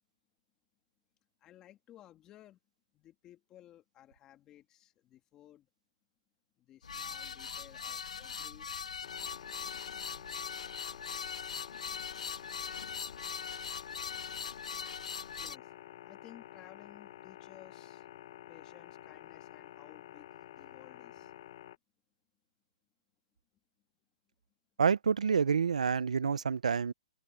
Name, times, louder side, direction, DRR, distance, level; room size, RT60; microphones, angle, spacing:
voice 1, 1.4-2.6 2.9-5.7 6.6-8.7 15.4-15.7 16.0-18.1 18.5-21.3, left 12 dB, 15° left, 2.3 m, -57 dB
sound 1, 6.8-15.6, left 6 dB, 85° left, 1.9 m, -41 dB
sound 2, 9.0-21.8, left 12 dB, 45° left, 1.2 m, -50 dB
voice 2, 24.8-26.9, right 6 dB, 85° right, 0.7 m, -28 dB
open air
hypercardioid pair, 160°, 4 cm